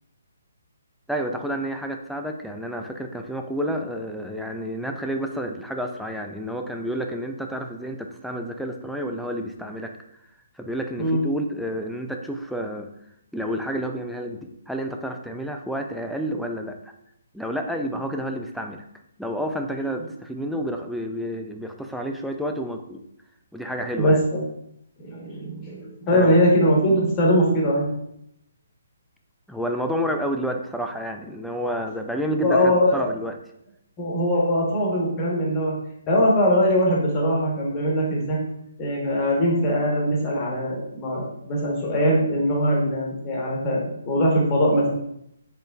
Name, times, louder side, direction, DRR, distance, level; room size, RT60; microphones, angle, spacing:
voice 1, 1.1-9.9 10.6-12.9 13.3-16.9 17.3-18.8 19.2-23.0 23.5-24.2 26.1-26.4 29.5-33.4, equal, ahead, 2 dB, 0.3 m, -30 dB
voice 2, 24.0-24.4 25.0-27.9 32.4-33.1 34.0-35.7 36.1-38.4 38.8-44.9, equal, 25° left, -3 dB, 1.1 m, -21 dB
4.2 x 3.1 x 2.4 m, 0.78 s
figure-of-eight pair, 135°, 0 cm